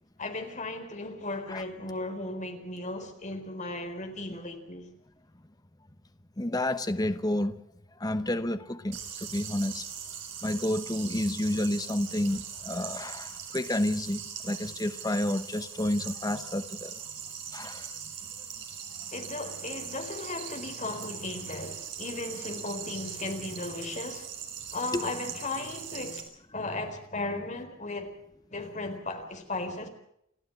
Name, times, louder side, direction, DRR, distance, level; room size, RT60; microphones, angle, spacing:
voice 1, 0.2-4.9 19.1-24.3 24.7-26.3 26.5-28.2 28.5-29.9, left 2 dB, 35° left, 4.1 m, -36 dB
voice 2, 6.4-7.6 8.0-9.8 10.4-16.9 17.5-17.9 24.9-25.1, left 1 dB, 20° left, 1.0 m, -30 dB
sound 1, 8.9-26.2, right 8 dB, 65° right, 6.1 m, -41 dB
29.0 x 12.5 x 7.8 m
head